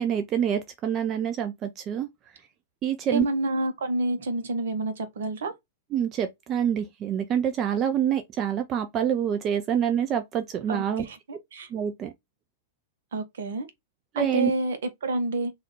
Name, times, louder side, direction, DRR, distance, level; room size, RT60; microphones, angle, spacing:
voice 1, 0.0-2.1 2.8-3.3 5.9-11.0 11.7-12.1 14.1-14.5, right 9 dB, 30° right, 0.4 m, -26 dB
voice 2, 3.1-5.5 10.7-11.7 13.1-13.7 14.1-15.5, right 2 dB, 70° right, 0.8 m, -29 dB
3.5 x 2.4 x 3.0 m
figure-of-eight pair, 105°, 0 cm